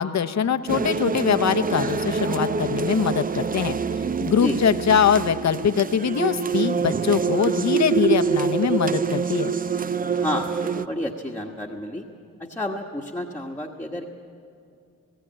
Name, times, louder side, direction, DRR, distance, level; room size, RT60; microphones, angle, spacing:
voice 1, 0.0-3.8 4.2-9.5, left 7 dB, 50° left, 10 dB, 0.8 m, -22 dB
sound 1, 0.7-10.9, right 6 dB, 25° right, 0.5 m, -25 dB
voice 2, 10.2-12.1 12.4-14.1, left 1 dB, 5° left, -1 dB, 1.3 m, -30 dB
18.5 x 16.5 x 8.9 m, 2.4 s
cardioid pair, 90°, 34 cm